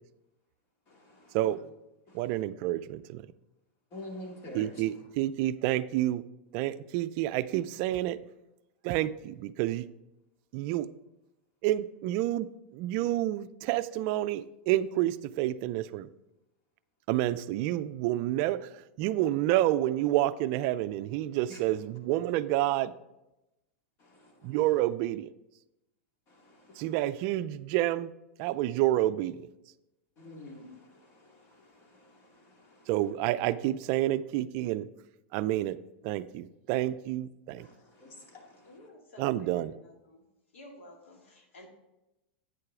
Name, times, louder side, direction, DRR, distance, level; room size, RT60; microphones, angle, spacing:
voice 1, 0.9-1.4 2.1-2.3 3.9-4.7 21.5-21.6 24.0-24.5 26.3-26.9 30.2-32.9 37.6-38.7, left 1 dB, 40° left, 1 dB, 2.2 m, -48 dB
voice 2, 2.1-3.2 4.5-6.2 6.5-8.2 8.8-9.9 10.5-10.9 11.6-12.5 12.7-16.1 17.1-18.7 19.0-22.9 24.4-25.3 26.8-28.1 28.4-29.4 32.9-34.9 35.3-35.8 36.0-37.7 39.2-39.7, right 14 dB, 50° right, 14 dB, 0.4 m, -29 dB
voice 3, 38.6-40.3 40.5-41.7, left 1 dB, 90° left, 2 dB, 2.0 m, -52 dB
9.0 x 6.6 x 3.7 m, 0.95 s
hypercardioid pair, 125°, 7 cm